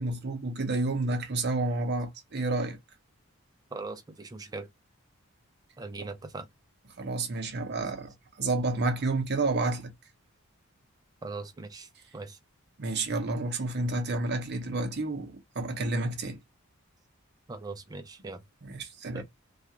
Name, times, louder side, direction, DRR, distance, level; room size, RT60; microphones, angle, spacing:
voice 1, 0.0-2.8 6.0-6.1 7.0-8.1 8.4-9.9 12.8-16.4 18.6-19.2, right 2 dB, 50° right, 0.7 m, -30 dB
voice 2, 3.7-4.7 5.8-6.5 11.2-12.4 17.5-18.4 19.1-19.2, right 3 dB, 15° right, 0.3 m, -40 dB
2.3 x 2.3 x 2.8 m
head